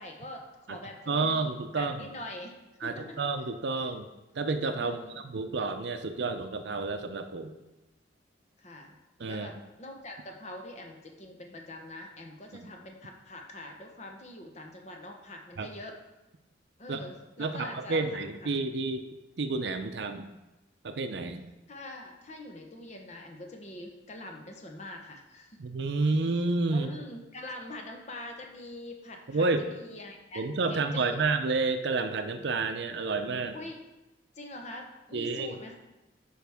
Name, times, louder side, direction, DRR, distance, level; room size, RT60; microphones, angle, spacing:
voice 1, 0.0-2.5 2.8-3.2 4.8-5.2 8.6-9.0 9.3-16.0 16.8-18.5 21.7-25.6 26.7-30.4 30.7-31.2 33.5-33.8 34.3-35.8, left 1 dB, 40° left, 2 dB, 0.9 m, -44 dB
voice 2, 1.1-2.1 2.8-4.1 4.3-7.6 9.2-9.5 12.5-12.7 15.6-15.7 16.9-17.0 17.4-19.1 19.4-20.3 20.8-21.4 25.6-26.9 29.3-29.6 30.4-33.6 35.1-35.6, right 3 dB, 65° right, 8 dB, 0.5 m, -30 dB
9.1 x 4.8 x 3.5 m, 1.0 s
head